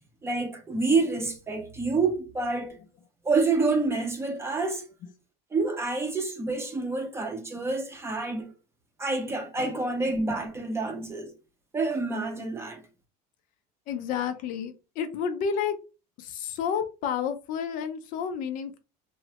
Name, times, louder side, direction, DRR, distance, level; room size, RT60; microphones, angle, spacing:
voice 1, 0.2-2.8 3.2-4.8 5.5-8.5 9.0-11.3 11.7-12.8, right 3 dB, 15° right, 0.6 m, -28 dB
voice 2, 13.9-15.8 16.2-18.8, left 7 dB, 50° left, 0.4 m, -30 dB
3.0 x 2.0 x 2.8 m
cardioid pair, 140°, 18 cm